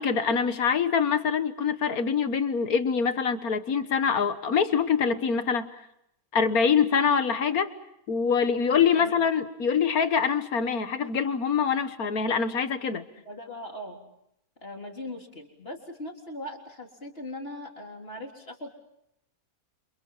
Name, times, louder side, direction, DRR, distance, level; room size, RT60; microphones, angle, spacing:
voice 1, 0.0-5.7 6.3-7.7 8.1-13.0, left 6 dB, 70° left, 10 dB, 1.8 m, -24 dB
voice 2, 8.9-9.3 13.3-14.1 14.6-18.7, left 1 dB, 40° left, 1 dB, 4.0 m, -40 dB
29.5 x 27.5 x 5.6 m, 0.79 s
omnidirectional pair, 1.6 m